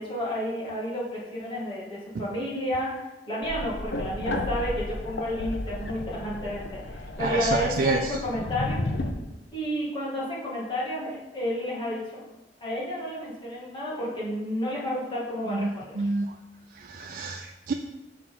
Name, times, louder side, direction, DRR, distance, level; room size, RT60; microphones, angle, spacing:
voice 1, 0.0-2.9 3.3-8.8 9.5-12.2 12.6-16.0, left 1 dB, 30° left, -6 dB, 2.2 m, -31 dB
sound 1, 3.4-9.1, left 1 dB, 80° left, 0.7 m, -33 dB
voice 2, 7.2-8.2 15.5-16.4 16.7-17.7, right 3 dB, 50° right, 4 dB, 0.4 m, -28 dB
6.2 x 3.9 x 5.8 m, 1.0 s
head